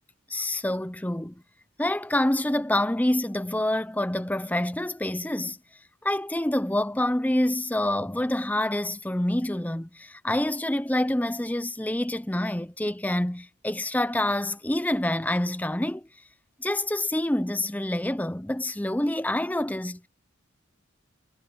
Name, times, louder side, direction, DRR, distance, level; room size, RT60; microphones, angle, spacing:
voice 1, 0.3-1.4 1.8-5.6 6.0-16.1 16.6-20.1, left 1 dB, 5° left, 0.6 m, -27 dB
head